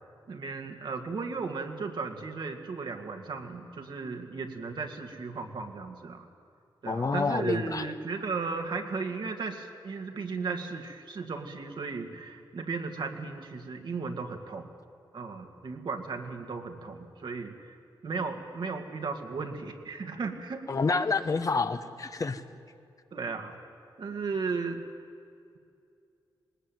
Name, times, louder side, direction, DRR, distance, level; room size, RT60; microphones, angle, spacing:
voice 1, 0.3-6.3 6.8-14.7 15.1-17.7 18.0-20.7 23.1-23.6 24.0-24.8, right 4 dB, 65° right, 4 dB, 2.2 m, -35 dB
voice 2, 6.8-7.9 20.7-22.4, left 4 dB, 45° left, 9 dB, 1.1 m, -28 dB
20.0 x 19.0 x 9.3 m, 2.4 s
cardioid pair, 65°, 8 cm